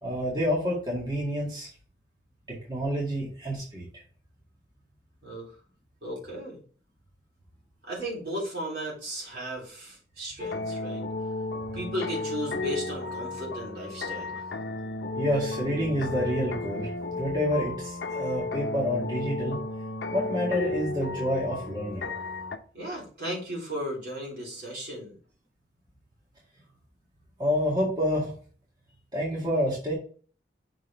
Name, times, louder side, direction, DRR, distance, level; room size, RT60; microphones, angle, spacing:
voice 1, 0.0-1.7 2.7-3.9 15.1-19.6 20.1-22.1 27.4-28.3 29.1-29.9, equal, 25° right, -5 dB, 1.9 m, -28 dB
voice 2, 6.0-6.6 7.8-11.0 11.7-14.4 22.7-25.2, equal, 65° right, -4 dB, 3.6 m, -35 dB
sound 1, 10.4-22.6, left 2 dB, 90° left, 0.7 m, -33 dB
6.2 x 3.9 x 4.5 m, 0.40 s
head